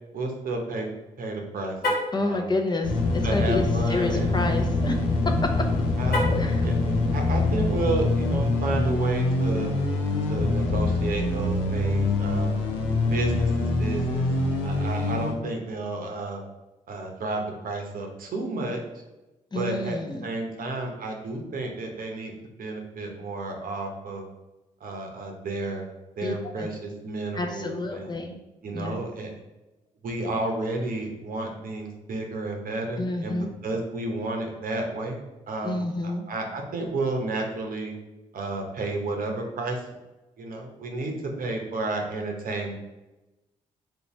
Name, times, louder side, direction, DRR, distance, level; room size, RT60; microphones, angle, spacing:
voice 1, 0.1-0.9 1.2-1.8 2.2-2.5 3.2-4.4 6.0-6.3 6.6-9.7 10.3-12.6 13.1-14.3 14.6-16.4 16.9-18.8 19.5-22.3 22.6-24.3 24.8-25.9 26.2-28.2 28.6-29.3 30.0-33.4 33.6-35.2 35.5-37.9 38.3-39.8 40.4-42.7, right 2 dB, 60° right, 2 dB, 0.8 m, -31 dB
Car, 1.7-2.2 6.0-6.6, left 1 dB, 65° left, 1.2 m, -27 dB
voice 2, 2.1-3.6 3.9-5.0 6.3-6.7 19.5-20.3 26.2-26.7 27.3-28.4 28.7-29.0 33.0-33.5 35.6-36.2, left 2 dB, 25° left, 3 dB, 0.6 m, -29 dB
sound 1, 2.8-15.3, left 2 dB, 85° left, 0.6 m, -24 dB
3.2 x 2.7 x 3.1 m, 1.0 s
hypercardioid pair, 45°, 17 cm